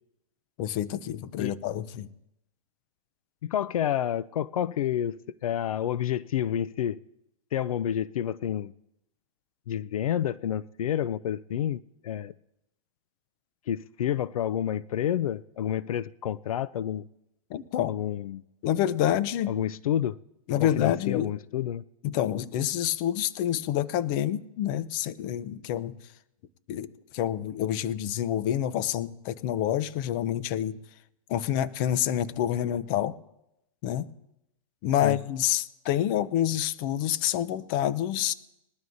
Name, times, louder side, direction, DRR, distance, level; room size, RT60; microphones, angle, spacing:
voice 1, 0.6-2.1 17.5-17.9 18.6-19.6 20.5-21.3 22.0-26.0 26.7-30.8 31.3-33.1 33.8-34.1 34.8-38.3, left 11 dB, 35° left, 0.6 m, -27 dB
voice 2, 3.4-7.0 7.5-8.7 9.7-12.3 13.7-17.1 17.9-18.4 19.5-20.2 20.6-21.8 35.0-35.2, left 10 dB, 80° left, 0.5 m, -29 dB
21.0 x 12.5 x 2.7 m
hypercardioid pair, 150°, 18 cm